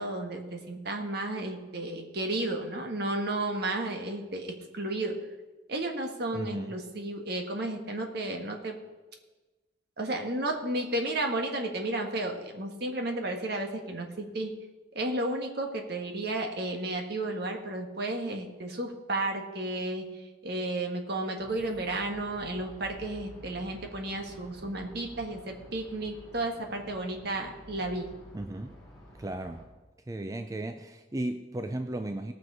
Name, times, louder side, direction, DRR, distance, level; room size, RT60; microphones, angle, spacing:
voice 1, 0.0-5.2 5.7-8.8 10.0-14.5 14.9-28.1, right 2 dB, 60° right, 3 dB, 1.5 m, -33 dB
voice 2, 6.3-6.8 28.3-28.8 29.2-29.7 30.1-32.3, right 1 dB, 20° right, 7 dB, 0.4 m, -35 dB
sound 1, 21.4-29.6, equal, ahead, 3.7 m, -50 dB
18.0 x 6.1 x 4.9 m, 1.2 s
head